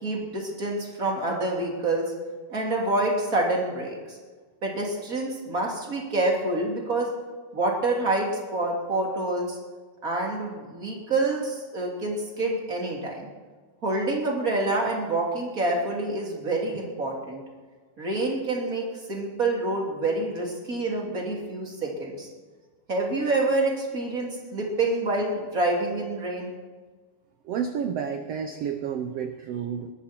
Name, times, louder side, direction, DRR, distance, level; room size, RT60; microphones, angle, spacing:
voice 1, 0.0-2.1 2.5-4.2 4.6-7.1 7.5-9.6 10.0-13.3 13.8-17.4 18.0-22.3 22.9-26.5, right 2 dB, 25° right, -1 dB, 3.3 m, -27 dB
voice 2, 27.4-29.9, right 7 dB, 75° right, 7 dB, 1.4 m, -30 dB
21.0 x 13.0 x 4.5 m, 1.4 s
omnidirectional pair, 3.9 m